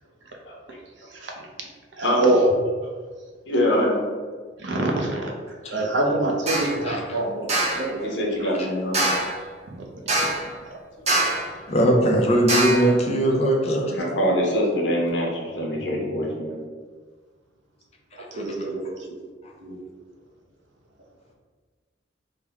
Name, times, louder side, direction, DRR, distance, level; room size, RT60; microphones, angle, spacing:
voice 1, 2.0-2.5 4.6-5.3 5.7-8.1 10.7-10.8 11.2-11.4 15.8-16.0 18.1-19.0 19.6-19.8, right 2 dB, 75° right, 1 dB, 0.6 m, -25 dB
voice 2, 3.5-4.0 8.0-9.1 13.9-16.6, equal, 75° left, -2 dB, 0.8 m, -24 dB
sound 1, 6.5-6.8 7.5-7.9 8.9-9.4 10.1-10.5 11.1-11.5 12.5-12.9, right 1 dB, 35° right, 0.7 m, -23 dB
voice 3, 6.8-7.2 8.5-8.7 11.7-13.9 18.3-18.4, right 1 dB, 35° left, 0 dB, 0.5 m, -20 dB
3.3 x 2.1 x 3.4 m, 1.5 s
head